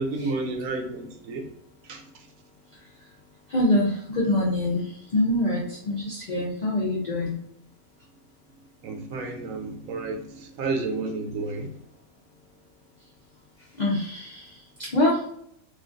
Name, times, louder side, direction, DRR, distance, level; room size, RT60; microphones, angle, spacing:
voice 1, 0.0-1.5 1.8-2.0 8.8-11.7, right 3 dB, 75° right, 3 dB, 1.0 m, -31 dB
voice 2, 3.5-7.3 13.8-15.2, left 1 dB, 65° left, -4 dB, 0.4 m, -25 dB
3.1 x 2.3 x 2.4 m, 0.70 s
omnidirectional pair, 1.5 m